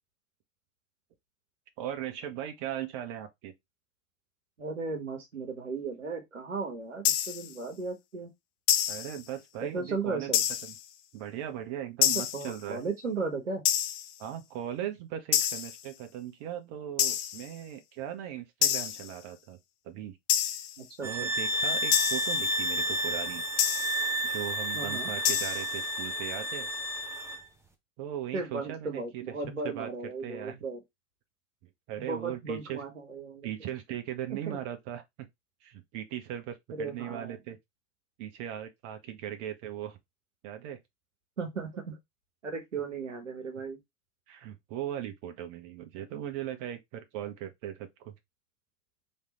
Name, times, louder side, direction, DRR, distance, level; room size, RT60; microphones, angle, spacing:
voice 1, 1.8-3.5 8.9-10.3 10.6-10.8 11.1-12.8 14.2-19.6 19.8-20.2 21.0-23.4 24.2-26.7 28.0-29.2 29.6-29.9 30.2-30.5 31.9-32.8 33.4-35.0 35.6-37.6 38.2-40.0 40.4-40.8 43.6-43.7 44.3-48.1, right 11 dB, 50° right, 1.3 m, -38 dB
voice 2, 4.6-8.3 9.6-10.4 12.3-13.6 20.8-21.3 24.7-25.1 28.3-30.8 32.0-33.5 34.5-34.6 36.7-37.4 41.4-42.0 42.4-43.8, right 4 dB, 90° right, 1.3 m, -36 dB
sound 1, 7.0-7.5 8.7-9.2 10.3-10.8 12.0-12.5 13.7-14.1 15.3-15.8 17.0-17.5 18.6-19.1 20.3-20.8 21.9-22.4 23.6-24.1 25.2-25.7, left 11 dB, 45° left, 0.7 m, -27 dB
sound 2, 21.0-27.4, right 1 dB, 5° right, 1.1 m, -31 dB
3.6 x 3.3 x 4.3 m
hypercardioid pair, 90°, 36 cm